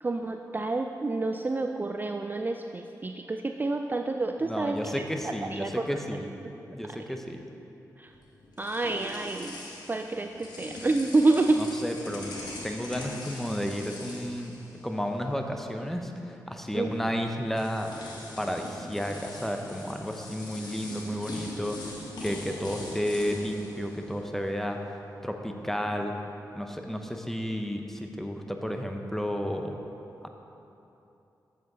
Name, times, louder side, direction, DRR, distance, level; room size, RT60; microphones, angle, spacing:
voice 1, 0.0-5.1 5.5-6.0 8.0-8.1 8.6-9.6 9.9-11.6 16.7-16.9, right 3 dB, 25° right, 4 dB, 0.4 m, -28 dB
voice 2, 4.4-6.3 6.7-7.4 11.6-12.4 12.6-14.6 14.8-17.9 18.4-21.9 22.2-25.0 25.2-26.2 26.5-29.8 30.2-30.3, equal, 5° left, 4 dB, 0.8 m, -32 dB
sound 1, 8.1-15.3 15.6-15.8 16.9-17.0 17.5-24.7, left 2 dB, 80° left, 1.4 m, -42 dB
7.6 x 7.4 x 4.0 m, 2.9 s
cardioid pair, 55°, 7 cm